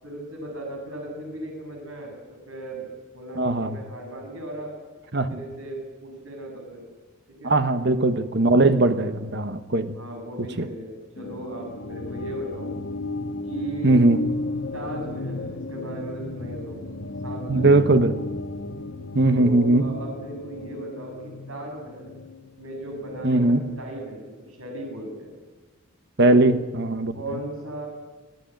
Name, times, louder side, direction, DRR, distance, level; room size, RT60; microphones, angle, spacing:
voice 1, 0.0-4.8 5.3-6.8 7.3-7.6 8.9-9.2 10.0-12.7 13.5-14.1 14.7-16.8 17.2-17.9 19.3-22.2 22.6-25.4 26.2-26.5 27.1-27.9, right 1 dB, 85° right, 1 dB, 7.4 m, -37 dB
voice 2, 3.4-3.8 5.1-5.4 7.4-9.9 10.6-10.7 13.8-14.2 17.5-18.1 19.1-19.9 23.2-23.6 26.2-27.2, right 2 dB, 55° right, 9 dB, 1.2 m, -19 dB
sound 1, 11.2-23.8, left 2 dB, 85° left, 1.5 m, -34 dB
26.5 x 17.0 x 9.2 m, 1.3 s
head